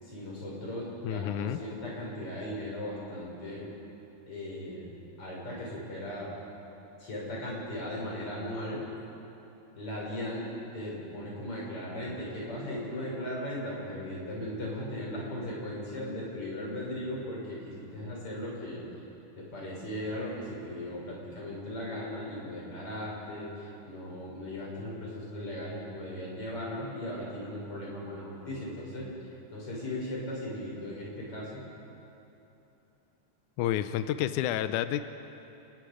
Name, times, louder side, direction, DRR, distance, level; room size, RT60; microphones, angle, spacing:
voice 1, 0.0-3.7 4.3-4.8 5.2-6.3 7.0-8.8 9.7-10.5 10.7-18.8 19.4-29.1 29.5-31.6, left 1 dB, 35° left, -4 dB, 6.4 m, -37 dB
voice 2, 1.0-1.6 33.6-35.0, left 11 dB, 85° left, 11 dB, 1.7 m, -29 dB
28.0 x 20.5 x 5.0 m, 2.9 s
omnidirectional pair, 4.3 m